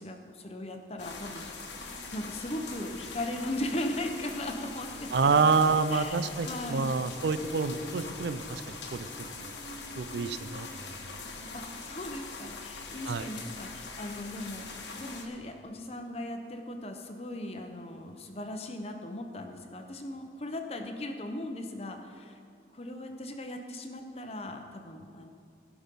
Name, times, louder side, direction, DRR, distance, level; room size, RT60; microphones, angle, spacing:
voice 1, 0.0-1.4 2.1-5.3 5.9-6.9 11.5-14.7 14.9-22.4 22.7-25.3, left 1 dB, 35° left, 4 dB, 0.9 m, -38 dB
sound 1, 1.0-15.3, left 3 dB, 80° left, 1.4 m, -42 dB
voice 2, 5.1-9.5 10.0-10.7 13.1-13.3, right 4 dB, 70° right, 12 dB, 0.4 m, -28 dB
16.0 x 6.1 x 5.4 m, 2.4 s
head